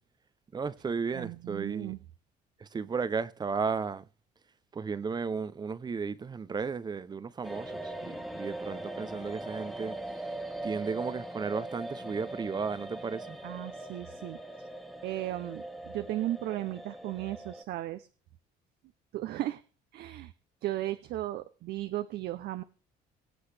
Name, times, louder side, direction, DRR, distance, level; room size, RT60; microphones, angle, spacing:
voice 1, 0.5-2.0 2.6-4.0 4.7-10.3 10.6-13.4, right 5 dB, 25° right, 0.6 m, -34 dB
voice 2, 1.1-2.0 13.4-14.7 15.0-18.1 19.1-19.6 19.9-20.3 20.6-22.6, right 14 dB, 70° right, 0.7 m, -36 dB
sound 1, 7.4-17.6, right 1 dB, ahead, 1.0 m, -41 dB
23.0 x 7.8 x 3.3 m
cardioid pair, 110°, 17 cm